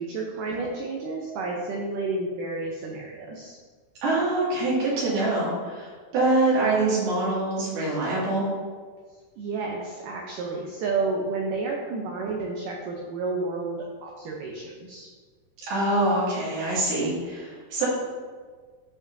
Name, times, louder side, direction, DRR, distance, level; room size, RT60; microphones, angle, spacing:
voice 1, 0.0-3.6 9.4-15.1, right 3 dB, 90° right, -1 dB, 1.8 m, -31 dB
voice 2, 4.0-8.5 15.7-17.9, right 2 dB, 65° right, -7 dB, 3.8 m, -24 dB
14.5 x 5.1 x 2.6 m, 1.5 s
omnidirectional pair, 4.8 m